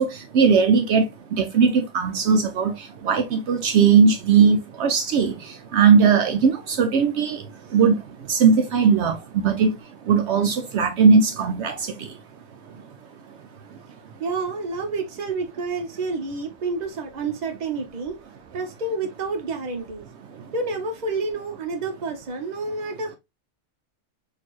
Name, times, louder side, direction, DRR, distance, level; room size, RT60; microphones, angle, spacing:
voice 1, 0.0-7.4 7.7-8.0 8.3-9.8 10.1-12.1, right 5 dB, 70° right, 0.8 m, -19 dB
voice 2, 14.2-18.2 18.5-20.0 20.5-23.2, right 3 dB, 40° right, 0.9 m, -29 dB
4.2 x 2.8 x 2.9 m
omnidirectional pair, 1.2 m